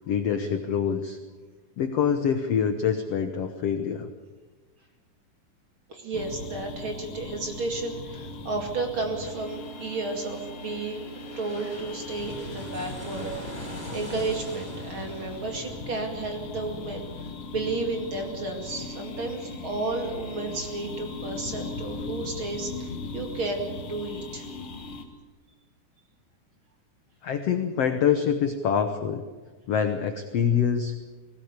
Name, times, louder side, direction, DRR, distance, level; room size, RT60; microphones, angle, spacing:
voice 1, 0.1-1.2 1.8-4.1 27.2-29.2 29.7-30.9, left 7 dB, 80° left, 7 dB, 1.4 m, -25 dB
voice 2, 5.9-11.1 11.4-24.5, right 3 dB, 40° right, 3 dB, 2.6 m, -32 dB
sound 1, 6.1-25.0, left 3 dB, 50° left, 1.8 m, -38 dB
sound 2, 8.9-20.1 20.5-20.6, equal, 10° left, 5.8 m, -46 dB
19.5 x 17.5 x 8.2 m, 1.3 s
omnidirectional pair, 4.4 m